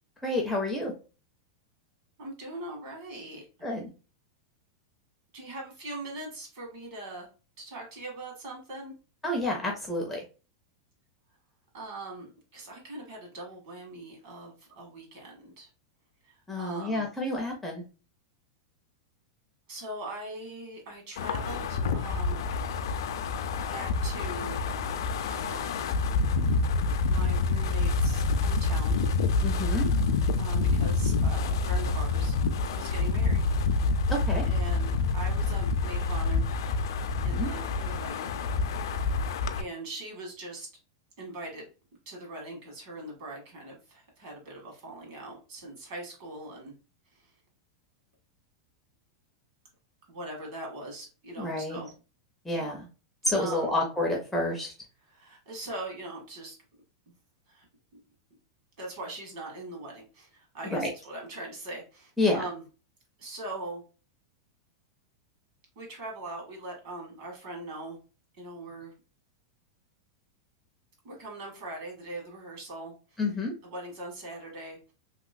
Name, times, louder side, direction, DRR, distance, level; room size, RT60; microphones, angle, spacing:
voice 1, 0.2-0.9 3.6-3.9 9.2-10.2 16.5-17.8 29.4-29.9 34.1-34.5 37.1-37.5 51.4-51.8 52.5-52.9 53.2-54.7 60.7-60.9 62.2-62.4 73.2-73.5, left 1 dB, 5° left, -1 dB, 0.4 m, -29 dB
voice 2, 2.2-3.4 5.3-7.3 7.6-8.9 11.7-15.7 16.3-17.1 19.7-22.4 23.7-24.6 25.3-25.7 27.1-29.0 30.4-32.4 32.8-33.4 34.5-36.4 37.2-38.3 39.6-40.7 41.2-41.7 42.0-46.7 47.1-47.2 50.1-51.9 53.3-53.7 55.1-56.6 57.5-57.7 57.9-58.0 58.8-62.6 63.2-63.8 65.7-68.0 68.4-68.9 71.0-73.2 73.6-74.9, right 2 dB, 45° right, 0 dB, 1.5 m, -41 dB
Wind, 21.2-39.6, left 3 dB, 65° left, 0.4 m, -27 dB
2.9 x 2.9 x 2.4 m, 0.34 s
supercardioid pair, 175°, 2 cm